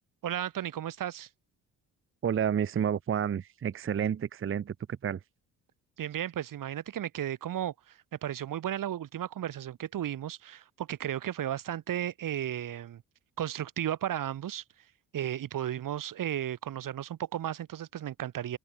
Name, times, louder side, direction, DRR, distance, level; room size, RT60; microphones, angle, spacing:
voice 1, 0.2-1.3 6.0-13.0 13.4-14.6 15.1-18.6, right 11 dB, 45° right, 1.1 m, -34 dB
voice 2, 2.2-5.2, right 8 dB, 30° right, 0.7 m, -30 dB
open air
hypercardioid pair, 45°, 45 cm